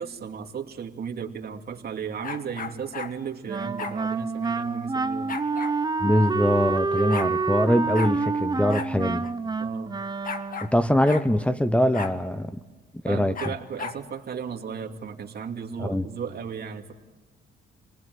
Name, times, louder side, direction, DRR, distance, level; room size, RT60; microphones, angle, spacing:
voice 1, 0.0-5.4 9.6-10.0 13.0-16.9, right 7 dB, 50° right, 2.7 m, -35 dB
sound 1, 2.2-3.1 3.8-4.0 5.3-5.8 6.6-6.7 6.9-7.3 7.9-8.1 8.7-8.9 9.2-9.3 10.2-10.7 11.1-11.3 11.9-12.2 13.3-14.0, left 5 dB, 45° left, 1.8 m, -35 dB
Wind instrument woodwind instrument, 3.5-10.8, right 4 dB, 20° right, 0.8 m, -28 dB
voice 2, 6.0-9.2 10.6-12.5 13.0-13.3 15.8-16.0, left 1 dB, 5° left, 1.0 m, -23 dB
29.0 x 19.5 x 9.5 m
cardioid pair, 90°, 20 cm